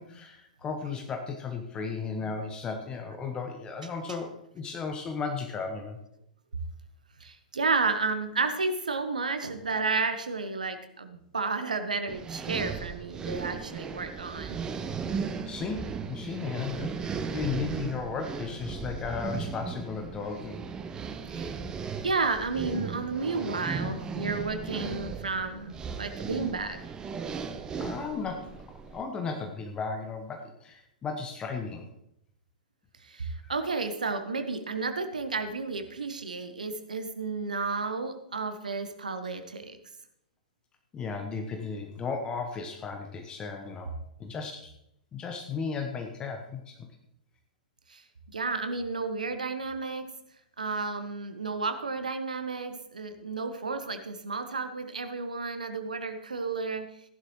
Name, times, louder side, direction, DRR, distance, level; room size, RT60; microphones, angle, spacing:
voice 1, 0.0-6.0 15.4-20.6 27.8-28.6 28.9-31.9 40.9-43.9 44.2-44.7 45.1-46.9, left 5 dB, 20° left, 4 dB, 1.1 m, -35 dB
voice 2, 7.2-14.6 21.3-21.5 22.0-26.8 33.1-39.8 47.9-48.0 48.3-50.1 50.6-56.8, right 4 dB, 70° right, 8 dB, 1.2 m, -32 dB
sound 1, 12.1-29.0, right 5 dB, 15° right, 0.7 m, -36 dB
15.0 x 11.0 x 3.1 m, 0.77 s
figure-of-eight pair, 105°, 4 cm